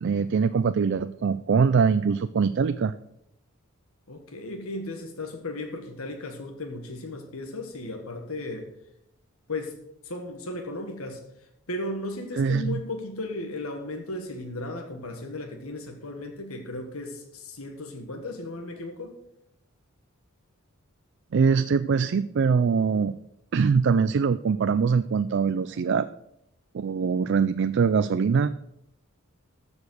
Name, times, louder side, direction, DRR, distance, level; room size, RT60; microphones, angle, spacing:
voice 1, 0.0-2.9 12.4-12.8 21.3-23.1 23.5-26.1 26.7-28.5, right 5 dB, 55° right, 12 dB, 0.4 m, -23 dB
voice 2, 4.1-8.7 9.5-9.8 10.0-11.2 11.7-19.2, left 2 dB, 90° left, 4 dB, 1.5 m, -35 dB
14.0 x 5.3 x 6.3 m, 0.81 s
head